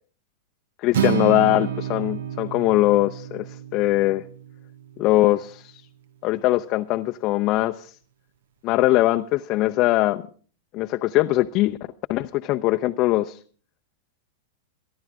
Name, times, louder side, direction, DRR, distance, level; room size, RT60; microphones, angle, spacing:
voice 1, 0.8-3.5 3.7-4.2 5.0-5.8 6.2-7.9 8.6-10.2 10.7-11.8 12.1-13.4, left 17 dB, 45° left, 6 dB, 0.6 m, -21 dB
Acoustic guitar, 0.9-5.2, right 10 dB, 70° right, 1.0 m, -29 dB
24.5 x 11.5 x 3.6 m, 0.44 s
hypercardioid pair, 100°, 0 cm